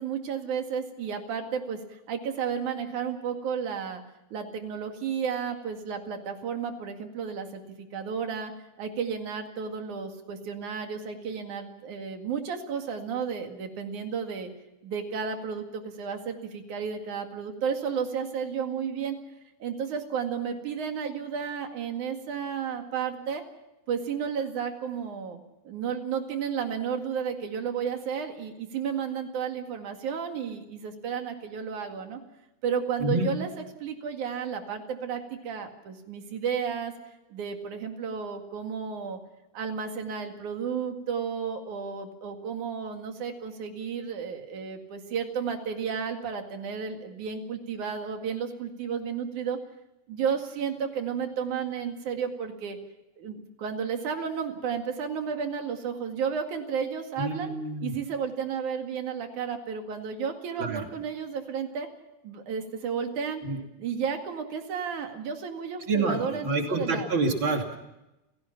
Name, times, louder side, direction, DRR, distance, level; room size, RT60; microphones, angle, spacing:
voice 1, 0.0-4.0 4.3-8.5 8.8-14.5 14.8-19.2 19.6-23.4 23.9-32.2 32.6-33.5 33.8-36.9 37.3-39.2 39.5-49.6 50.1-52.8 53.2-57.5 57.8-61.9 62.2-63.4 63.8-67.1, right 7 dB, 75° right, 5 dB, 3.5 m, -32 dB
voice 2, 33.0-33.3 57.2-57.9 60.6-60.8 63.4-63.6 65.9-67.8, right 3 dB, 40° right, 2 dB, 3.5 m, -27 dB
29.5 x 17.0 x 5.9 m, 0.96 s
omnidirectional pair, 3.5 m